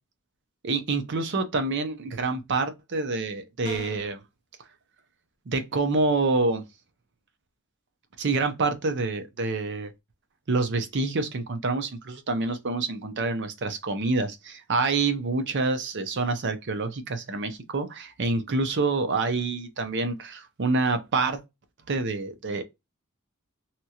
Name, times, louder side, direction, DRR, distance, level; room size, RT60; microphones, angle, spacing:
voice 1, 0.6-4.2 5.5-6.6 8.2-9.9 10.5-21.4 21.9-22.6, right 3 dB, 50° right, 0.6 m, -27 dB
sound 1, 3.6-4.2, left 3 dB, 30° left, 0.3 m, -39 dB
2.9 x 2.3 x 2.8 m
head